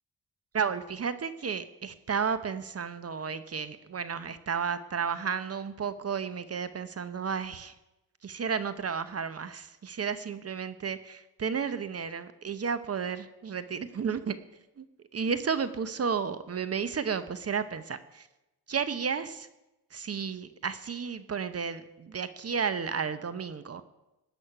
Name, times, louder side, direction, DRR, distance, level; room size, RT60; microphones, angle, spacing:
voice 1, 0.5-7.7 8.2-14.4 14.8-14.9 15.1-18.3 18.7-19.5 19.9-23.8, right 6 dB, 40° right, 13 dB, 0.9 m, -32 dB
18.5 x 6.4 x 10.0 m, 0.97 s
cardioid pair, 115°, 39 cm